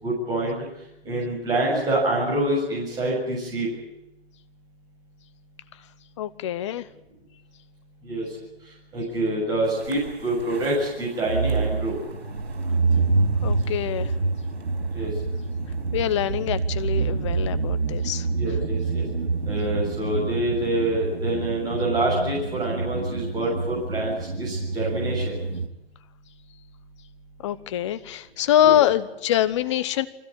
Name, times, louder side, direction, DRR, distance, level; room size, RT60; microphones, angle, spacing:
voice 1, 0.0-0.6 1.1-3.7 8.0-8.3 8.9-12.0 14.9-15.1 18.3-19.0 19.5-25.3 28.6-28.8, right 1 dB, 10° right, -4 dB, 6.9 m, -26 dB
voice 2, 6.2-6.9 13.4-14.1 15.9-18.3 27.4-30.1, left 11 dB, 30° left, 14 dB, 0.9 m, -24 dB
sound 1, 9.8-25.7, right 3 dB, 80° right, 4.6 m, -27 dB
23.5 x 16.5 x 9.9 m, 0.88 s
hypercardioid pair, 150°, 32 cm